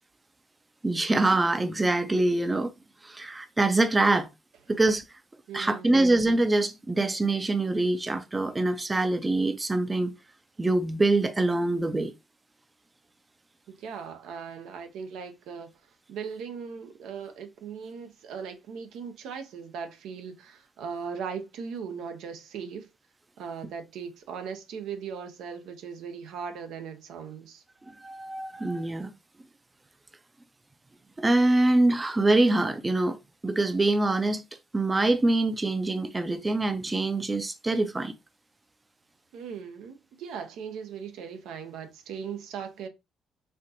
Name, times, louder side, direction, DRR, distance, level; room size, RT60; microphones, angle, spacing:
voice 1, 0.8-2.7 3.0-4.3 4.7-5.0 5.5-10.1 10.6-12.1 27.9-29.1 31.2-33.2 33.4-34.4 34.7-38.1, right 2 dB, 20° right, 0.5 m, -24 dB
voice 2, 5.5-6.1 13.8-15.7 16.1-22.9 23.4-27.6 39.3-42.9, right 6 dB, 85° right, 0.7 m, -38 dB
4.3 x 2.5 x 2.6 m
cardioid pair, 90°, 0 cm